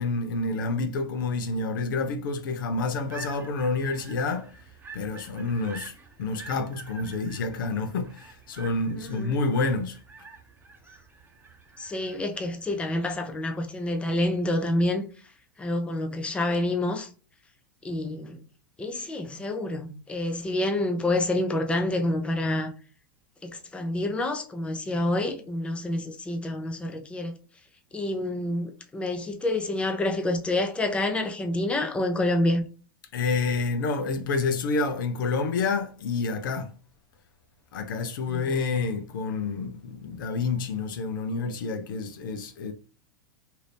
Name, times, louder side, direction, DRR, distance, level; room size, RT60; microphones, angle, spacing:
voice 1, 0.0-4.5 4.9-5.9 6.2-10.0 33.1-36.7 37.7-42.7, left 3 dB, 75° left, 0.6 m, -28 dB
sound 1, 3.0-14.6, right 4 dB, 20° right, 0.9 m, -48 dB
voice 2, 9.0-9.4 11.8-15.0 15.6-17.1 17.8-18.4 18.8-22.7 23.4-27.4 27.9-32.6 38.3-38.4, left 1 dB, 10° left, 0.6 m, -28 dB
2.8 x 2.5 x 3.3 m
hypercardioid pair, 105°, 11 cm